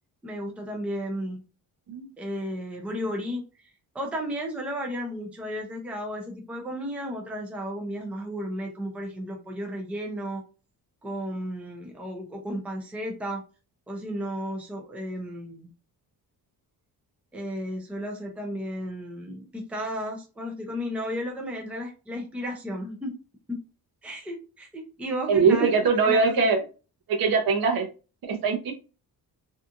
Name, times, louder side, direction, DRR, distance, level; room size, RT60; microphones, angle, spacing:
voice 1, 0.2-1.4 2.2-10.4 11.0-13.4 13.9-15.7 17.3-23.1 23.5-23.6 24.0-25.8 26.0-26.5, equal, 5° right, 1 dB, 0.5 m, -34 dB
voice 2, 25.3-26.6 27.1-27.9 28.2-28.7, right 4 dB, 60° right, 3 dB, 0.8 m, -22 dB
2.7 x 2.4 x 2.4 m, 0.33 s
cardioid pair, 155°, 39 cm